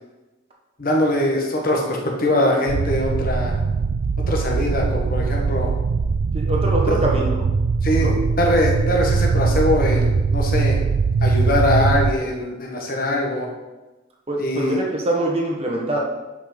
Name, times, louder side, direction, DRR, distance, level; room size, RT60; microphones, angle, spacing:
voice 1, 0.8-3.6 4.3-5.7 6.9-7.1 7.8-8.1 8.4-10.8 11.2-13.5 14.4-14.8, left 1 dB, 45° left, 0 dB, 1.4 m, -22 dB
sound 1, 2.7-12.1, right 4 dB, 70° right, 0.4 m, -21 dB
voice 2, 6.3-7.4 8.0-8.1 14.3-16.0, right 1 dB, 30° right, -1 dB, 1.2 m, -24 dB
11.5 x 5.2 x 4.0 m, 1.1 s
head